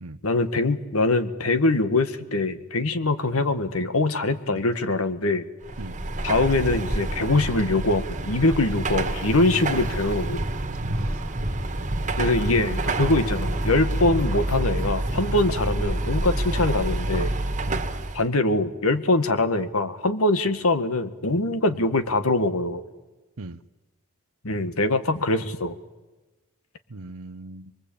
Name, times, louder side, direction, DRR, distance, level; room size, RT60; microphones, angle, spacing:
voice 1, 0.2-5.5 6.2-10.4 12.2-17.3 18.1-22.8 24.4-25.8, left 2 dB, 90° left, 1.8 m, -23 dB
Car passing by / Traffic noise roadway noise / Engine, 5.6-18.3, right 2 dB, 35° right, 2.0 m, -27 dB
voice 2, 10.9-11.2 12.6-12.8 17.7-17.9 21.7-21.8 23.4-23.6 26.9-27.7, right 2 dB, 75° right, 1.0 m, -39 dB
24.0 x 23.0 x 8.7 m
head